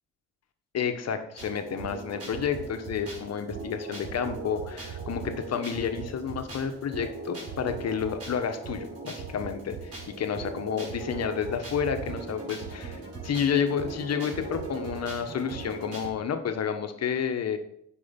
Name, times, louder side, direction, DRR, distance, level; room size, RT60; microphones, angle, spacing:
voice 1, 0.7-17.6, left 7 dB, 55° left, 8 dB, 1.3 m, -30 dB
sound 1, 1.4-16.1, right 4 dB, 50° right, 4.3 m, -39 dB
9.8 x 5.4 x 5.3 m, 0.73 s
cardioid pair, 90°, 30 cm